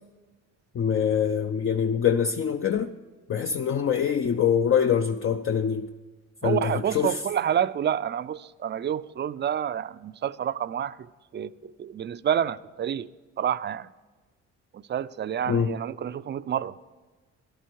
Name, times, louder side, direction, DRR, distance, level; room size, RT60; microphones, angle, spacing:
voice 1, 0.7-2.9 3.3-5.9 6.4-7.2 15.5-15.7, left 7 dB, 45° left, 0.6 m, -24 dB
voice 2, 6.4-11.1 11.3-13.1 13.4-13.9 14.7-16.9, right 9 dB, 35° right, 0.5 m, -28 dB
14.0 x 11.0 x 4.6 m
cardioid pair, 90°, 30 cm